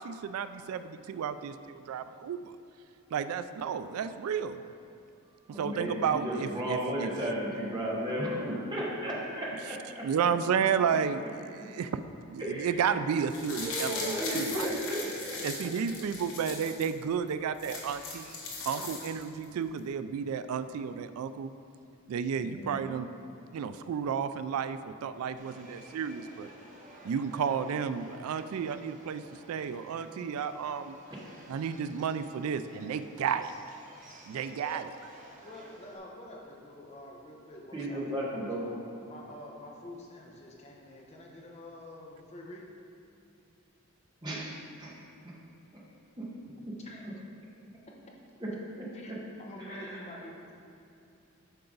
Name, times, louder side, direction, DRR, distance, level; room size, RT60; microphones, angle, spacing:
voice 1, 0.0-2.4 3.1-4.6 5.5-7.1 10.0-12.0 12.3-14.7 15.4-21.5 22.1-23.1 23.5-26.5 27.0-31.0 31.5-33.5 34.3-34.8, right 7 dB, 85° right, 11 dB, 0.3 m, -32 dB
voice 2, 5.5-10.1 12.4-12.9 13.5-16.0 18.8-18.9 22.4-23.0 31.1-31.2 37.7-38.7 44.2-44.4 44.8-44.9 45.7-45.8 46.2-46.3 46.7-46.8 48.4-48.5 49.1-49.2 49.6-50.0, equal, 20° right, -6 dB, 1.5 m, -35 dB
sound 1, 13.2-16.9 17.3-17.4 17.5-19.4 19.8-19.9, left 3 dB, 70° left, 1.5 m, -39 dB
Subway metro underground, 25.4-36.0, right 1 dB, 35° right, 1.0 m, -53 dB
voice 3, 35.4-42.8 46.8-47.2 48.9-49.1 49.4-50.5, left 1 dB, 30° left, -2 dB, 0.9 m, -47 dB
9.0 x 5.7 x 3.9 m, 2.7 s
head